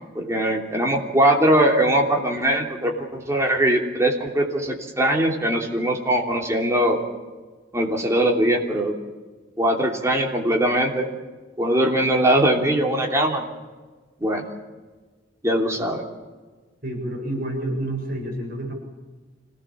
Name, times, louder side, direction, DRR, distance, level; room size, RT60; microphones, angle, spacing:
voice 1, 0.1-7.0 7.7-8.9 9.6-11.1 11.6-13.5 14.2-14.4 15.4-16.0, right 1 dB, 15° right, 0 dB, 3.1 m, -21 dB
voice 2, 16.8-18.7, right 1 dB, 50° right, 1 dB, 7.3 m, -29 dB
26.0 x 18.0 x 7.4 m, 1.3 s
head